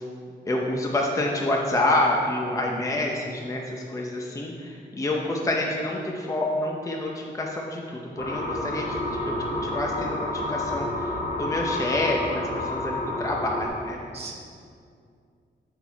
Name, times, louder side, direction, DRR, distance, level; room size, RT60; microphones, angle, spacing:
voice 1, 0.5-11.1 11.4-14.0, left 1 dB, 15° left, -1 dB, 0.6 m, -28 dB
voice 2, 2.5-3.0 14.1-14.3, right 4 dB, 35° right, -2 dB, 0.8 m, -40 dB
sound 1, 8.2-13.7, left 1 dB, 55° left, 1.1 m, -29 dB
8.8 x 4.2 x 4.4 m, 2.3 s
wide cardioid pair, 150°, 19 cm